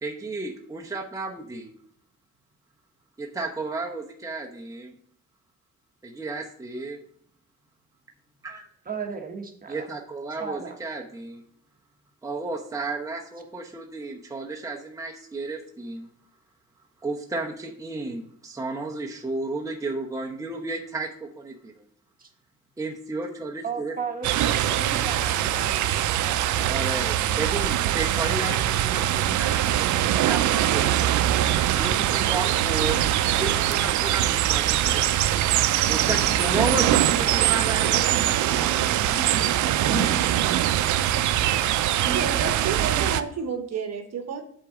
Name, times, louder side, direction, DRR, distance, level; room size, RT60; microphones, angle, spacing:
voice 1, 0.0-1.7 3.2-4.9 6.0-7.0 8.4-8.6 9.7-11.4 12.2-16.1 17.0-21.7 22.8-24.0 26.7-31.1 31.8-33.0 33.3-35.4 35.9-40.2, right 3 dB, 10° right, 1 dB, 0.9 m, -33 dB
voice 2, 8.8-9.9 10.4-10.8 22.2-22.3 23.6-26.7 42.0-43.1, right 5 dB, 30° right, 3 dB, 1.4 m, -35 dB
sound 1, 24.2-43.2, right 12 dB, 75° right, 0.5 m, -22 dB
voice 3, 42.1-44.4, right 6 dB, 55° right, 5 dB, 1.1 m, -31 dB
8.2 x 3.8 x 5.9 m, 0.64 s
cardioid pair, 90°, 30 cm